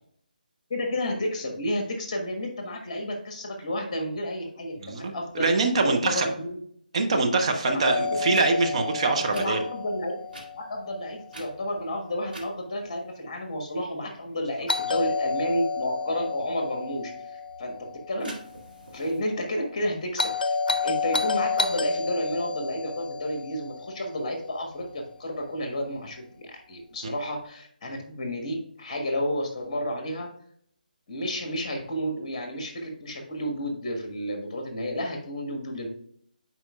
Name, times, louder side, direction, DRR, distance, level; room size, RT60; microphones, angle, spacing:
voice 1, 0.7-5.5 5.9-6.6 7.6-7.8 9.3-10.1 10.5-18.3 18.9-20.6 20.8-30.3 31.1-35.9, left 1 dB, 35° left, 3 dB, 1.4 m, -31 dB
voice 2, 4.8-5.1 5.4-6.3 6.9-9.6 27.0-27.1, right 3 dB, 40° right, 4 dB, 0.8 m, -24 dB
Doorbell, 7.8-11.8 14.7-18.9 20.2-24.6, left 4 dB, 65° left, 0.6 m, -31 dB
sound 1, 8.2-8.5 9.3-9.5 10.3-10.5 11.3-11.8 12.3-12.5 18.2-19.2, right 1 dB, 80° right, 2.1 m, -43 dB
9.6 x 4.4 x 2.3 m, 0.65 s
figure-of-eight pair, 145°, 5 cm